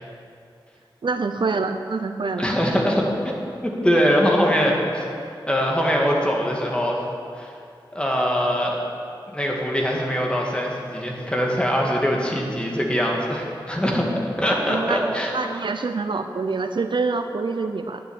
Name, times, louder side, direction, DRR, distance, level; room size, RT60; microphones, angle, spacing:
voice 1, 1.0-2.5 14.7-18.0, right 4 dB, 65° right, 7 dB, 0.6 m, -26 dB
voice 2, 2.4-5.0 5.5-7.0 7.4-7.5 7.9-8.8 9.3-14.1 14.4-15.3, equal, 10° left, -2 dB, 2.0 m, -22 dB
10.5 x 6.3 x 9.0 m, 2.5 s
wide cardioid pair, 85°, 9 cm